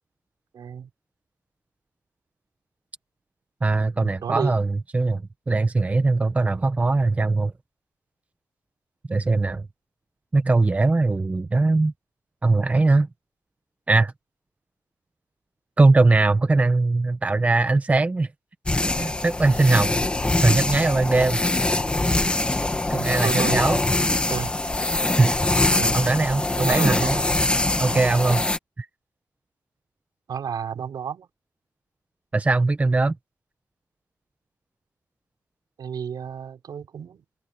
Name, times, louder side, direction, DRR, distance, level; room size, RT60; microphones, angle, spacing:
voice 1, 0.5-0.9 4.0-4.6 22.9-23.6 24.3-24.5 25.8-26.1 26.6-27.2 30.3-31.3 35.8-37.2, right 7 dB, 85° right, 5.7 m, -31 dB
voice 2, 3.6-7.5 9.1-9.7 10.3-11.9 12.4-13.1 13.9-14.1 15.8-18.3 19.0-19.9 20.4-21.4 22.9-23.8 25.2-25.3 25.9-27.2 27.8-28.4 28.8-28.9 32.3-33.2, right 3 dB, 20° right, 1.0 m, -20 dB
sound 1, 18.7-28.6, left 2 dB, 15° left, 1.9 m, -23 dB
open air
wide cardioid pair, 170°, 7 cm